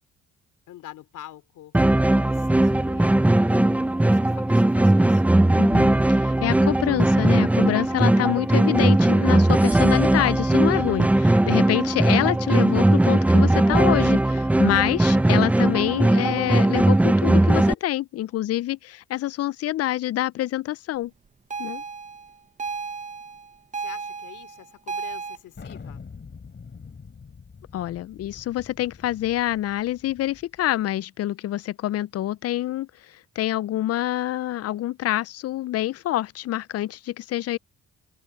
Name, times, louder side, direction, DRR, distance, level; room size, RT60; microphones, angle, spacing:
voice 1, 0.7-5.3 23.8-26.0, left 13 dB, 85° left, 2.8 m, -46 dB
sound 1, 1.7-17.7, right 1 dB, 5° right, 0.4 m, -19 dB
voice 2, 5.6-21.1 21.6-21.8 27.7-32.9 33.4-37.6, left 14 dB, 55° left, 0.4 m, -26 dB
sound 2, 21.5-25.4, right 5 dB, 25° right, 0.8 m, -34 dB
Thunder, 25.6-30.7, left 5 dB, 40° left, 4.3 m, -44 dB
cardioid pair, 90°, 30 cm